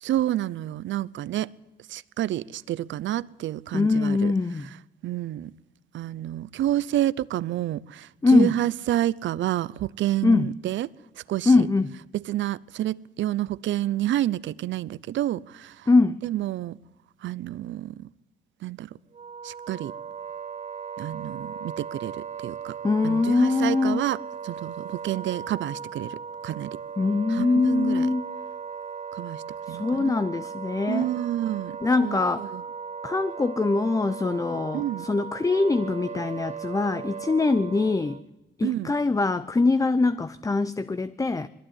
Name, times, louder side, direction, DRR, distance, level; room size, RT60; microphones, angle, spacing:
voice 1, 0.0-1.5 1.9-4.3 5.0-5.5 5.9-10.9 11.3-11.7 12.1-15.7 16.2-16.8 17.2-18.1 18.6-18.9 19.4-19.9 21.0-22.1 22.4-22.7 23.0-26.2 26.4-26.8 27.3-28.1 29.1-29.4 29.7-30.1 30.9-31.8 32.0-32.6 34.7-35.1 38.6-38.9, right 13 dB, 70° right, 0.7 m, -29 dB
voice 2, 3.7-4.7 8.2-8.6 10.2-10.5 11.5-12.0 15.9-16.2 22.8-24.0 27.0-28.3 29.7-31.1 31.8-32.5 33.0-38.2 38.6-41.5, left 3 dB, 15° left, 0.6 m, -23 dB
Wind instrument woodwind instrument, 19.1-38.2, right 6 dB, 35° right, 1.1 m, -37 dB
21.5 x 14.5 x 9.9 m
cardioid pair, 90°, 20 cm